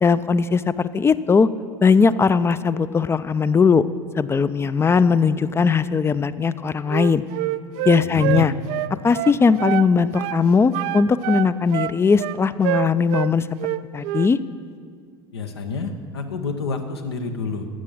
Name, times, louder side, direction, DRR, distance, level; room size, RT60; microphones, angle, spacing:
voice 1, 0.0-1.5 1.8-3.9 4.2-7.2 7.8-8.5 8.9-13.5 13.9-14.4, left 5 dB, 20° left, 15 dB, 0.4 m, -19 dB
Wind instrument woodwind instrument, 6.9-9.9 10.1-10.4 10.7-13.3 13.6-14.3, right 17 dB, 55° right, 0.4 m, -26 dB
voice 2, 8.0-8.5 15.3-17.7, left 4 dB, 80° left, 6 dB, 1.0 m, -28 dB
12.5 x 7.6 x 6.4 m, 2.1 s
figure-of-eight pair, 70°, 13 cm